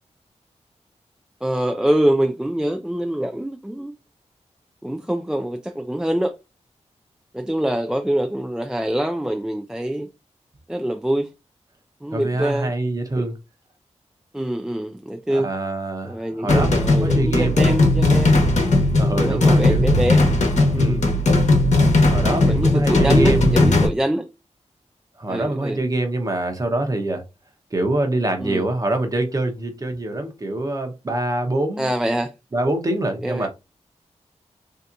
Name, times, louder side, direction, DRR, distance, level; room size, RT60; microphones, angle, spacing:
voice 1, 1.4-3.9 4.8-6.3 7.3-10.1 10.7-11.3 12.0-12.7 13.2-13.3 14.3-15.5 16.0-18.5 19.1-20.3 20.7-21.0 22.5-24.3 25.3-25.8 28.4-28.7 31.8-32.3 33.2-33.5, right 1 dB, 5° right, 0.3 m, -24 dB
voice 2, 12.1-13.4 15.3-17.6 19.0-20.0 20.8-21.1 22.1-23.7 25.2-27.2 27.7-31.9 32.5-33.5, right 1 dB, 30° right, 0.8 m, -25 dB
sound 1, 16.5-23.9, left 2 dB, 80° left, 1.0 m, -17 dB
3.4 x 2.8 x 2.5 m
wide cardioid pair, 120°, 12 cm